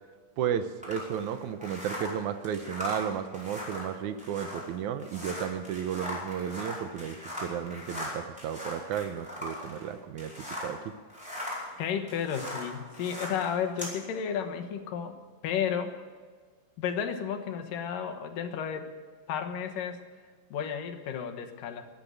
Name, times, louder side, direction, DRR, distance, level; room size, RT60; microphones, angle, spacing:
voice 1, 0.4-11.0, right 9 dB, 75° right, 10 dB, 2.1 m, -33 dB
sound 1, 0.8-10.8 11.1-14.0, left 1 dB, ahead, 4.7 m, -39 dB
voice 2, 11.8-15.2 15.4-15.9 16.8-18.9 19.3-20.0 20.5-21.9, left 8 dB, 90° left, 7 dB, 3.0 m, -32 dB
13.5 x 12.0 x 7.9 m, 1.5 s
omnidirectional pair, 3.7 m